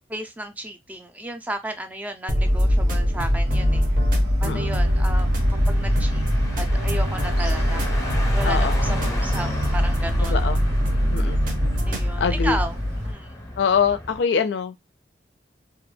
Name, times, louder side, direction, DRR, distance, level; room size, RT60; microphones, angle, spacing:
voice 1, 0.1-3.8 4.4-6.2 6.5-7.9 8.3-9.5 9.7-10.4 11.2-11.4 11.9-12.8 13.0-13.3, right 1 dB, 10° right, 0.3 m, -33 dB
sound 1, 2.3-12.1, equal, 50° right, 0.6 m, -23 dB
sound 2, 2.3-13.1, left 1 dB, 80° right, 1.1 m, -26 dB
voice 2, 4.4-4.7 8.4-8.8 10.2-10.6 11.1-11.4 12.2-12.6 13.6-14.8, left 6 dB, 80° left, 0.4 m, -24 dB
Car, 4.7-14.2, left 1 dB, 20° left, 0.7 m, -35 dB
2.3 x 2.2 x 3.2 m
head